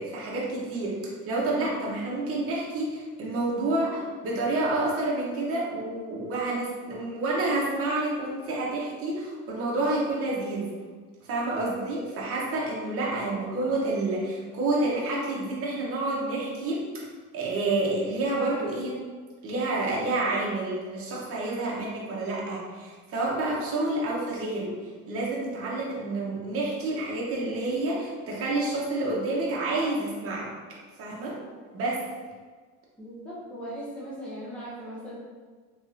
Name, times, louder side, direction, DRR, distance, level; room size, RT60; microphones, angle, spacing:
voice 1, 0.0-10.7 11.2-17.1 17.3-19.0 19.4-24.7 25.1-30.5 31.0-31.4 31.7-32.0, right 2 dB, 45° right, -4 dB, 1.0 m, -29 dB
voice 2, 13.2-13.5 33.0-35.1, equal, 5° left, -9 dB, 0.7 m, -39 dB
3.5 x 3.2 x 2.7 m, 1.5 s
cardioid pair, 160°, 32 cm